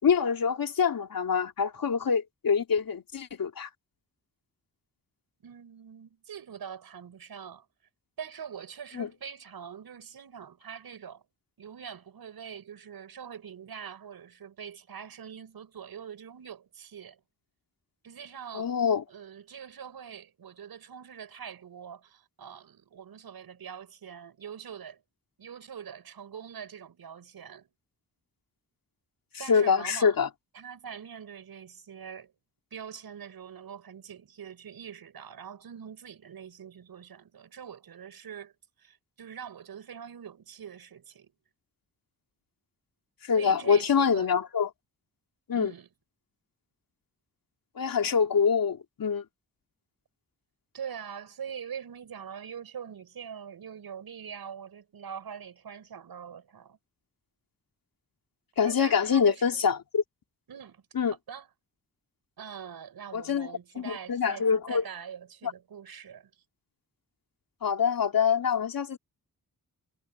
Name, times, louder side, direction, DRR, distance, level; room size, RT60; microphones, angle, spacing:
voice 1, 0.0-3.7 8.9-9.1 18.5-19.0 29.5-30.3 43.2-44.7 45.5-45.7 47.8-49.2 58.6-60.0 60.9-61.1 63.1-63.5 63.8-64.8 67.6-69.0, left 6 dB, 70° left, 3.0 m, -25 dB
voice 2, 5.4-7.7 8.2-11.2 11.6-17.2 18.0-18.7 19.1-25.0 25.4-27.7 29.4-30.2 30.5-32.3 32.7-38.5 38.8-41.3 43.3-44.3 45.5-45.9 50.7-56.8 58.6-59.6 60.5-60.8 61.3-61.5 62.4-66.3, right 7 dB, 80° right, 6.3 m, -43 dB
cardioid pair, 75°, 36 cm